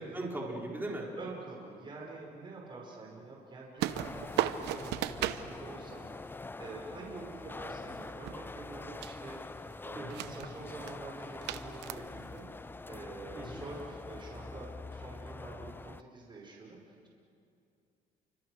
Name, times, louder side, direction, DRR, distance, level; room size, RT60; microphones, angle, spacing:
voice 1, 0.1-1.1 9.9-10.2 13.3-13.6, right 2 dB, 10° right, -2 dB, 4.3 m, -38 dB
voice 2, 1.2-17.1, right 3 dB, 30° right, -2 dB, 5.3 m, -47 dB
Leaving apartment + Bushwick Street + Subway, 3.8-16.0, left 3 dB, 10° left, 0.5 m, -45 dB
sound 1, 3.8-5.5 7.8-8.7 9.0-9.3 9.9-10.5 10.8-10.9 11.4-12.4, right 13 dB, 85° right, 0.9 m, -35 dB
30.0 x 25.0 x 6.3 m, 2.5 s
cardioid pair, 110°, 17 cm